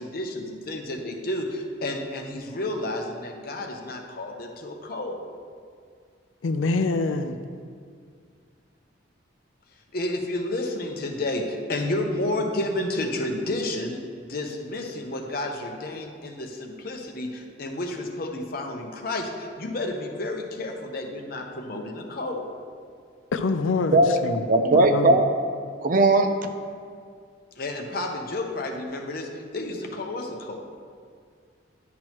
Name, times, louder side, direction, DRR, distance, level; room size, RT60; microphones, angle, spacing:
voice 1, 0.0-5.2 9.9-14.0 14.3-22.4 27.6-30.6, left 1 dB, 50° left, 2 dB, 0.8 m, -31 dB
voice 2, 6.4-7.4 23.3-24.4 24.7-25.3, left 3 dB, 90° left, 9 dB, 0.4 m, -25 dB
voice 3, 23.9-25.3 25.8-26.3, right 2 dB, 45° right, 7 dB, 0.5 m, -19 dB
10.5 x 6.1 x 3.0 m, 2.1 s
head